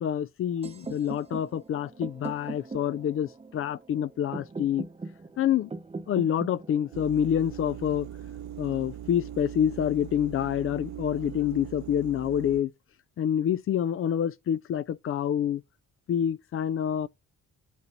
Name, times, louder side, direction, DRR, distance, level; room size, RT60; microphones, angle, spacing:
voice 1, 0.0-4.8 5.4-5.7 6.1-8.1 8.6-12.7 13.2-15.6 16.1-17.1, left 9 dB, 45° left, 0.4 m, -27 dB
sound 1, 0.6-8.6, right 3 dB, 20° right, 0.9 m, -41 dB
sound 2, 6.9-12.6, right 10 dB, 65° right, 0.8 m, -40 dB
8.2 x 3.0 x 5.2 m
cardioid pair, 90°, 30 cm